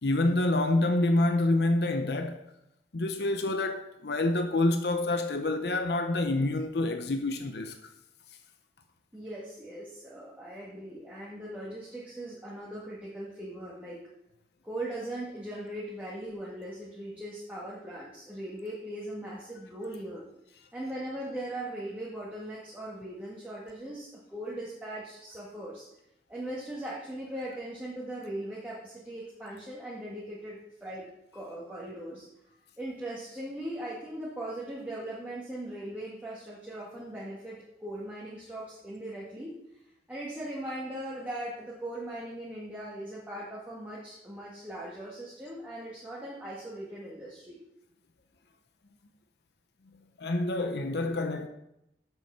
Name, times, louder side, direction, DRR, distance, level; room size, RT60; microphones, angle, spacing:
voice 1, 0.0-2.4 2.9-7.7 50.2-51.5, left 2 dB, 75° left, 0.8 m, -27 dB
voice 2, 9.1-14.0 14.6-20.3 20.7-25.9 26.3-31.1 31.3-32.3 32.8-39.5 40.1-47.6, right 1 dB, 10° right, 1.9 m, -39 dB
7.8 x 6.9 x 5.6 m
head